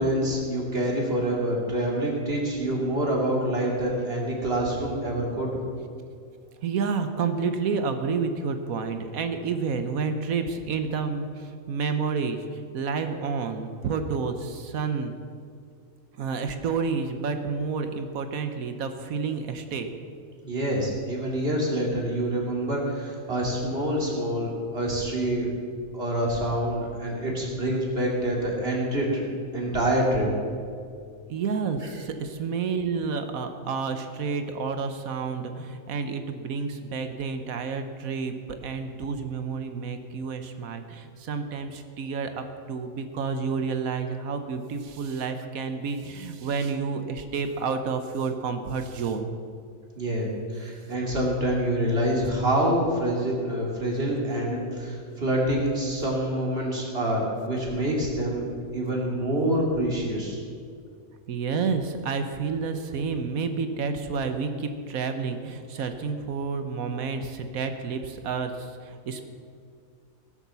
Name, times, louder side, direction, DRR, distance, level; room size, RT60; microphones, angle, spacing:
voice 1, 0.0-5.6 20.4-25.5 25.9-29.2 29.5-30.3 31.8-31.9 50.0-58.5 58.7-60.4, right 1 dB, 45° right, -2 dB, 2.9 m, -26 dB
voice 2, 6.6-15.1 16.1-19.9 31.3-49.3 61.3-69.2, right 5 dB, 80° right, 7 dB, 1.3 m, -30 dB
17.5 x 7.4 x 6.9 m, 2.3 s
omnidirectional pair, 1.5 m